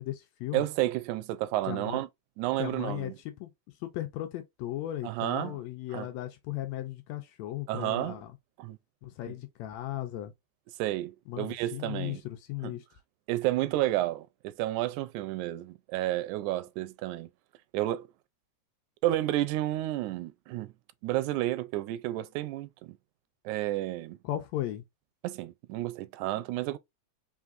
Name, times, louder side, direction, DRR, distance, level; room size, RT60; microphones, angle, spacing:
voice 1, 0.0-0.6 1.7-2.0 2.6-3.5 3.8-8.3 9.0-10.3 11.3-12.8 24.2-24.8, left 14 dB, 75° left, 1.7 m, -36 dB
voice 2, 0.5-2.1 2.4-3.2 5.0-5.6 5.9-6.1 7.7-8.2 8.6-8.8 9.3-9.4 10.8-12.2 12.6-12.8 13.3-17.3 17.7-18.1 19.0-20.7 21.0-23.0 23.5-24.2 25.2-26.8, right 15 dB, 85° right, 2.0 m, -31 dB
4.5 x 3.7 x 2.5 m
omnidirectional pair, 3.4 m